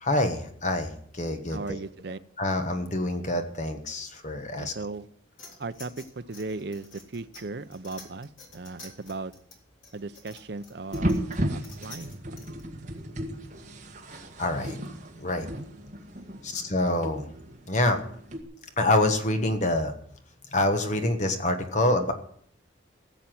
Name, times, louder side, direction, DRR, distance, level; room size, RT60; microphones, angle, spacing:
voice 1, 0.0-1.8 2.4-4.7 14.4-14.8 15.2-15.5 16.4-17.2 17.7-18.0 18.8-19.9 20.5-22.1, left 1 dB, 35° left, 6 dB, 1.3 m, -26 dB
voice 2, 1.5-2.2 4.6-5.1 5.6-9.3 9.9-11.2 11.5-12.4 12.9-13.0 15.5-15.7, right 3 dB, 55° right, 11 dB, 0.6 m, -37 dB
sound 1, 5.4-12.6, left 3 dB, 80° left, 4.1 m, -49 dB
sound 2, 10.9-18.4, right 1 dB, 40° right, 1.8 m, -34 dB
16.0 x 7.1 x 7.7 m, 0.63 s
head